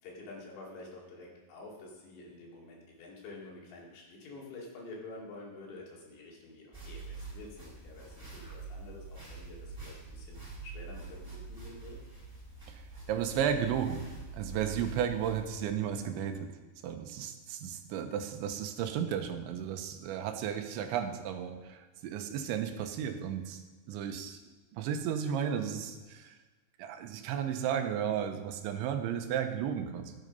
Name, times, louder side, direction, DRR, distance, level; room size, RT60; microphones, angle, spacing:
voice 1, 0.0-12.0 25.7-25.9, left 2 dB, 70° left, -3 dB, 5.0 m, -48 dB
sound 1, 6.7-15.7, right 4 dB, 5° right, 3.9 m, -45 dB
voice 2, 12.7-14.0 14.3-16.5 16.8-23.6 23.9-24.4 24.7-26.4 26.8-30.2, right 8 dB, 85° right, 6 dB, 3.4 m, -34 dB
16.0 x 9.0 x 5.4 m, 1.2 s
omnidirectional pair, 5.2 m